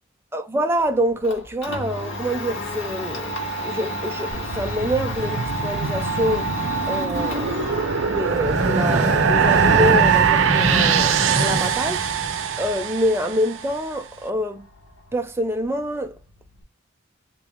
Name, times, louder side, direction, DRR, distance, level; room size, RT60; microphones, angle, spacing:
voice 1, 0.3-3.4 3.6-6.5 6.9-7.7 8.0-12.0 12.6-14.6 15.1-16.2, equal, 15° right, 0.6 m, -26 dB
Domestic sounds home sounds, 0.8-16.6, equal, 85° left, 1.6 m, -32 dB
sound 1, 4.3-13.7, right 7 dB, 80° right, 0.6 m, -22 dB
sound 2, 8.2-12.8, right 1 dB, 35° right, 1.2 m, -25 dB
3.4 x 3.0 x 3.1 m
head